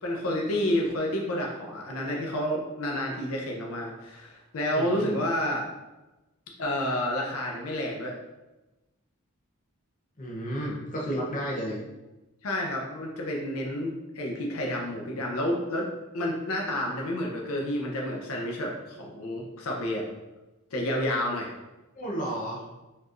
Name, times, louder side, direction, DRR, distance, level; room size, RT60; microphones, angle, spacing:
voice 1, 0.0-5.7 6.6-8.1 11.6-11.7 12.4-15.9 16.1-20.0 20.7-21.5, left 1 dB, 70° left, 0 dB, 0.6 m, -30 dB
voice 2, 4.7-5.1 10.2-11.8 21.9-22.6, equal, 40° left, -3 dB, 0.7 m, -32 dB
4.4 x 3.0 x 2.5 m, 1.1 s
head